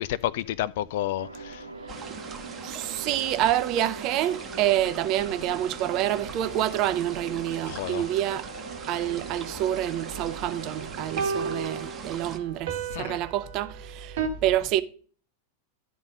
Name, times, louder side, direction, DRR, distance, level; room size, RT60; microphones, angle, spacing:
voice 1, 0.0-1.6 7.7-8.0 12.9-13.2, left 13 dB, 55° left, 0.4 m, -30 dB
sound 1, 1.2-11.8, right 2 dB, 85° right, 1.3 m, -42 dB
sound 2, 1.9-12.4, right 6 dB, 25° right, 1.0 m, -41 dB
voice 2, 2.6-8.5 8.9-14.8, right 12 dB, 40° right, 0.6 m, -27 dB
sound 3, 11.2-14.3, right 6 dB, 55° right, 1.1 m, -33 dB
11.5 x 4.2 x 4.9 m
figure-of-eight pair, 90°, 0 cm